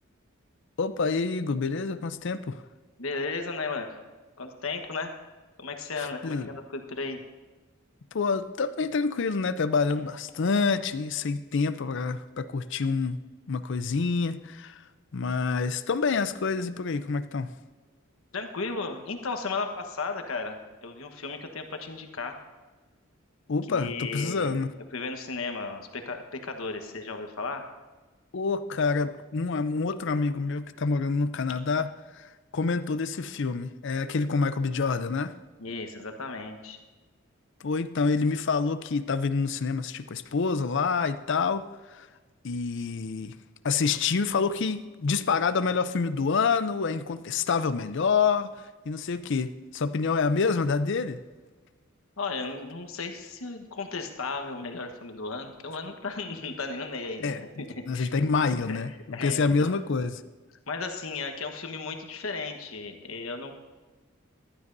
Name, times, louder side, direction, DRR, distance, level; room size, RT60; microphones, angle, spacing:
voice 1, 0.8-2.6 6.0-6.5 8.1-13.2 13.5-14.8 15.1-17.5 23.5-24.7 28.3-35.4 37.6-42.1 42.4-43.4 43.6-51.2 57.2-60.2, left 4 dB, 60° left, 13 dB, 0.5 m, -27 dB
voice 2, 3.0-3.9 4.4-5.1 5.6-7.2 18.3-22.4 23.7-24.5 24.9-27.6 35.6-36.8 52.2-57.7 57.9-58.1 58.7-58.8 59.1-59.7 60.7-63.5, left 4 dB, 85° left, 5 dB, 1.2 m, -35 dB
15.0 x 12.5 x 2.6 m, 1.3 s
head